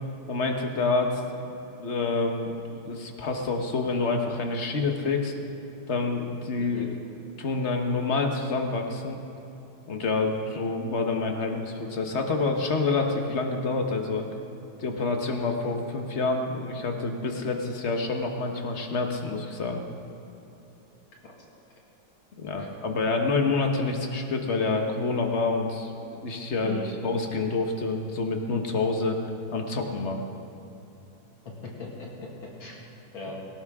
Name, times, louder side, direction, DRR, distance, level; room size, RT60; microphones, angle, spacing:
voice 1, 0.3-5.3 5.9-6.9 7.4-9.2 9.9-14.3 14.8-19.8 22.4-29.2 29.5-30.2, left 3 dB, 40° left, 3 dB, 1.2 m, -27 dB
voice 2, 31.4-32.8 33.1-33.4, left 3 dB, 70° left, -2 dB, 2.8 m, -39 dB
18.0 x 18.0 x 3.6 m, 2.8 s
omnidirectional pair, 2.3 m